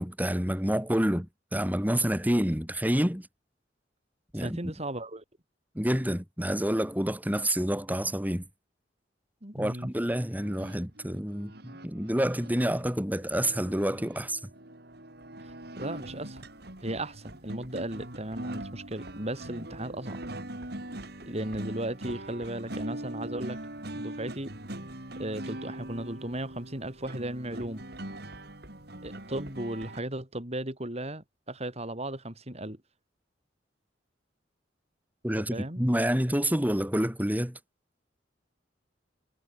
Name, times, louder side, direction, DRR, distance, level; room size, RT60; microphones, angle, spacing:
voice 1, 0.0-3.3 4.3-4.6 5.7-8.4 9.6-14.4 35.2-37.6, equal, 10° right, 4.5 m, -28 dB
voice 2, 4.3-5.2 9.4-9.9 15.4-16.5 16.8-20.2 21.2-23.6 23.9-24.5 25.2-27.8 29.0-32.8 35.4-35.8, right 1 dB, 35° right, 6.4 m, -36 dB
sound 1, 10.4-30.0, right 1 dB, 60° right, 4.9 m, -42 dB
head